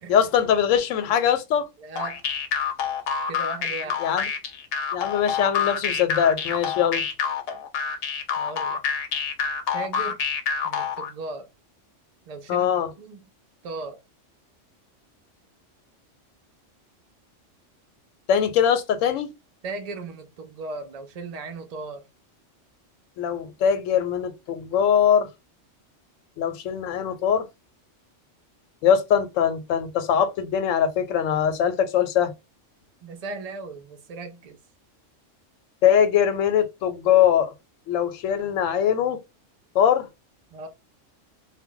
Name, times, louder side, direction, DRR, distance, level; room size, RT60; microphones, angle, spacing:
voice 1, 0.1-1.6 4.0-4.3 4.9-7.0 12.5-12.9 18.3-19.3 23.2-25.3 26.4-27.5 28.8-32.3 35.8-37.5 37.9-39.2 39.7-40.1, left 8 dB, 90° left, 0.9 m, -22 dB
voice 2, 1.8-2.3 3.3-4.0 8.4-8.8 9.7-10.2 10.6-11.5 12.3-12.7 13.0-13.2 13.6-14.0 19.6-22.0 33.0-34.6 40.5-40.7, right 3 dB, 80° right, 0.3 m, -36 dB
sound 1, 2.0-11.1, left 6 dB, 60° left, 0.7 m, -27 dB
2.1 x 2.0 x 3.6 m
omnidirectional pair, 1.3 m